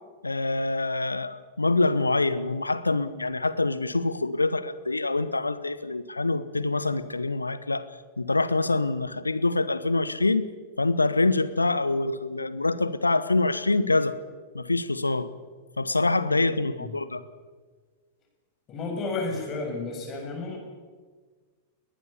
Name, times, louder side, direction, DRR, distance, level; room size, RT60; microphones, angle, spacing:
voice 1, 0.2-7.9 8.2-10.5 10.8-14.1 14.5-15.3 15.8-17.2, left 3 dB, 80° left, 15 dB, 1.1 m, -25 dB
voice 2, 18.7-20.6, left 3 dB, 30° left, 2 dB, 7.5 m, -32 dB
21.5 x 19.5 x 7.1 m, 1.5 s
figure-of-eight pair, 90°, 0 cm